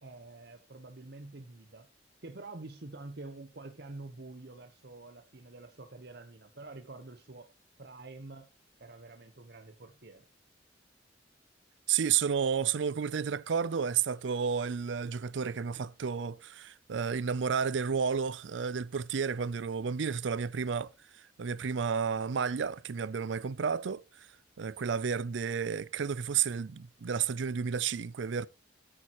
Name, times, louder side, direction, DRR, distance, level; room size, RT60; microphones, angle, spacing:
voice 1, 0.0-1.9 2.2-7.5 7.8-8.5 8.8-10.3, right 2 dB, 60° right, 1.1 m, -47 dB
voice 2, 11.9-20.9 21.4-24.0 24.6-28.5, right 6 dB, 90° right, 0.5 m, -31 dB
13.0 x 8.9 x 3.0 m
head